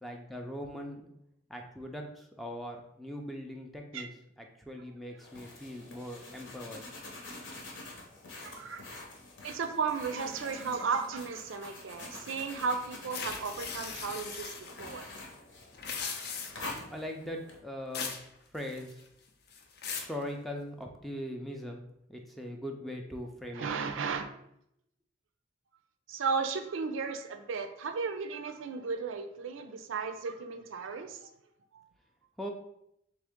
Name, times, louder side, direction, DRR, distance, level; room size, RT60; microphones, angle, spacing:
voice 1, 0.0-1.1 1.5-4.1 4.4-6.8 16.9-18.2 18.5-19.0 19.9-21.8 22.1-23.7 32.4-32.5, equal, ahead, 2 dB, 0.4 m, -40 dB
sound 1, 5.2-17.6, left 2 dB, 70° left, 1.0 m, -47 dB
voice 2, 8.4-8.8 9.4-14.5 14.8-15.1 23.5-24.3 26.1-31.3, right 5 dB, 85° right, 8 dB, 0.4 m, -34 dB
sound 2, 13.1-14.7 15.7-16.7 17.9-18.3 18.6-19.1 19.5-20.2, left 5 dB, 55° left, 0.5 m, -38 dB
3.6 x 3.3 x 3.5 m, 0.77 s
head